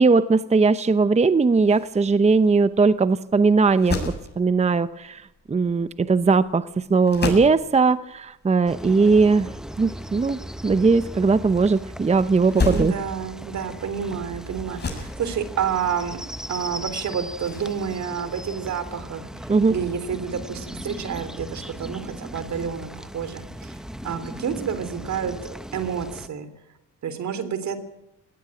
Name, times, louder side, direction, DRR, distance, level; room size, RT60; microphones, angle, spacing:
voice 1, 0.0-9.5 9.8-12.9 19.5-19.7, right 4 dB, 20° right, 13 dB, 0.8 m, -19 dB
sound 1, 1.3-19.1, left 3 dB, 35° left, 7.5 m, -35 dB
sound 2, 8.7-26.3, equal, ahead, 1.3 m, -38 dB
voice 2, 12.6-16.2 16.5-19.3 19.7-23.8 24.0-26.5 27.0-27.8, right 7 dB, 65° right, 13 dB, 3.4 m, -29 dB
19.5 x 18.5 x 8.9 m, 0.84 s
cardioid pair, 90°, 30 cm